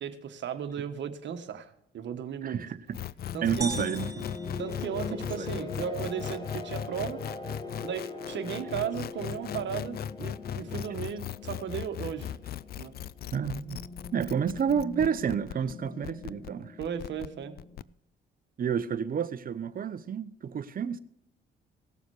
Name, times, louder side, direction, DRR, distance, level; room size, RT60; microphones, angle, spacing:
voice 1, 0.0-2.6 3.3-3.7 4.6-7.2 7.8-12.3 12.8-12.9 16.8-17.5, right 8 dB, 65° right, 1.4 m, -35 dB
voice 2, 2.4-3.0 3.4-4.3 5.4-5.5 13.3-13.8 14.1-16.8 18.6-21.0, right 7 dB, 45° right, 0.8 m, -30 dB
sound 1, 2.9-17.8, left 10 dB, 50° left, 0.4 m, -38 dB
sound 2, 3.2-17.8, left 4 dB, 20° left, 2.1 m, -42 dB
sound 3, 3.6-5.6, right 3 dB, 15° right, 0.7 m, -40 dB
17.5 x 7.1 x 4.8 m
cardioid pair, 90°, 20 cm